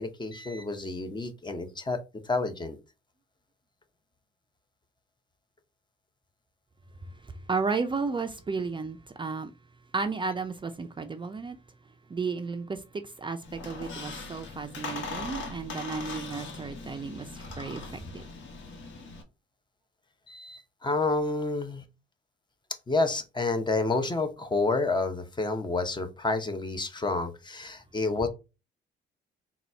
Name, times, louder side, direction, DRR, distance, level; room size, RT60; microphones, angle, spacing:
voice 1, 0.0-2.8 20.3-21.8 22.9-28.3, left 3 dB, 20° left, 0.8 m, -29 dB
voice 2, 7.2-9.5 9.9-11.6 12.1-18.2, right 4 dB, 25° right, 0.5 m, -33 dB
Squeak, 13.4-19.2, left 3 dB, 70° left, 1.3 m, -40 dB
4.0 x 2.4 x 4.3 m
cardioid pair, 90°, 20 cm